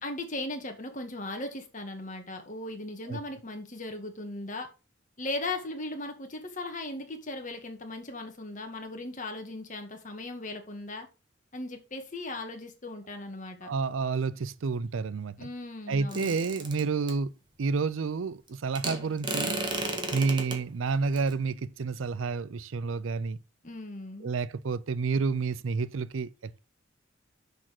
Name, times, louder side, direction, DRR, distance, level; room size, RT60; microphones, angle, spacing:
voice 1, 0.0-4.7 5.2-11.1 11.5-13.7 15.4-16.4 23.6-24.3, left 2 dB, 40° left, 1.9 m, -38 dB
voice 2, 13.6-15.5 15.9-17.3 17.6-19.6 20.1-23.4 24.2-26.6, right 4 dB, 85° right, 0.5 m, -30 dB
sound 1, 16.1-17.1 18.7-20.6 21.2-21.3, right 2 dB, 25° right, 1.6 m, -33 dB
6.7 x 6.1 x 5.9 m
head